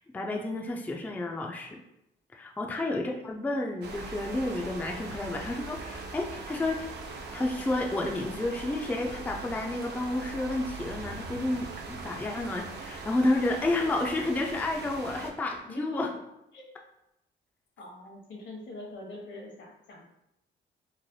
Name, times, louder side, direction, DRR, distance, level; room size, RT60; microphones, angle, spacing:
voice 1, 0.1-1.8 2.3-6.9 7.3-16.1, left 2 dB, 10° left, 1 dB, 0.3 m, -30 dB
sound 1, 3.8-15.3, right 3 dB, 60° right, 0.5 m, -41 dB
voice 2, 17.8-20.0, left 2 dB, 70° left, -1 dB, 1.0 m, -44 dB
3.2 x 2.1 x 2.6 m, 0.86 s
cardioid pair, 90°, 20 cm